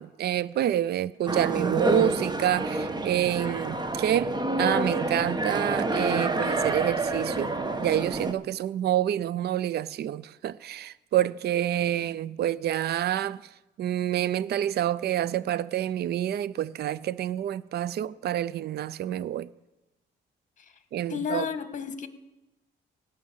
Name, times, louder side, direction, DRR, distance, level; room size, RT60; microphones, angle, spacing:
voice 1, 0.0-7.5 7.8-13.4 13.8-19.5 20.9-21.4, right 12 dB, 55° right, 0.4 m, -28 dB
sound 1, 1.3-8.3, right 2 dB, 20° right, 1.0 m, -28 dB
voice 2, 21.1-22.1, left 7 dB, 40° left, 1.4 m, -31 dB
17.5 x 6.4 x 7.3 m
cardioid pair, 90°, 20 cm